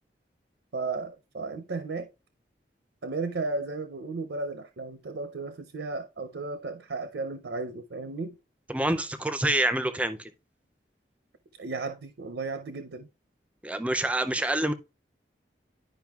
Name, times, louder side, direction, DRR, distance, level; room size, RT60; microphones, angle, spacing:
voice 1, 0.7-2.1 3.0-8.4 11.6-13.1, right 3 dB, 80° right, 0.6 m, -34 dB
voice 2, 8.7-10.3 13.6-14.7, right 1 dB, 5° right, 0.4 m, -27 dB
10.5 x 5.0 x 2.3 m
head